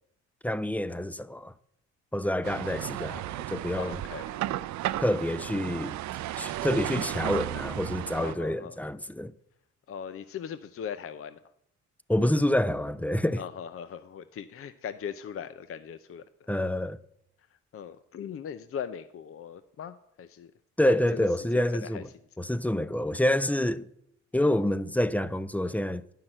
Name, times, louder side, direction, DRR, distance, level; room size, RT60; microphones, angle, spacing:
voice 1, 0.4-1.5 2.1-4.0 5.0-6.0 6.4-9.3 12.1-13.4 16.5-17.0 20.8-22.1 22.4-23.9 24.3-26.0, left 1 dB, 5° left, 0.5 m, -27 dB
sound 1, 2.4-8.4, right 14 dB, 70° right, 0.5 m, -34 dB
voice 2, 3.7-4.4 8.2-8.8 9.9-11.4 13.4-16.2 17.7-20.5 20.9-21.3 21.5-22.0, left 8 dB, 50° left, 0.6 m, -39 dB
11.0 x 5.8 x 8.9 m
cardioid pair, 90°, 30 cm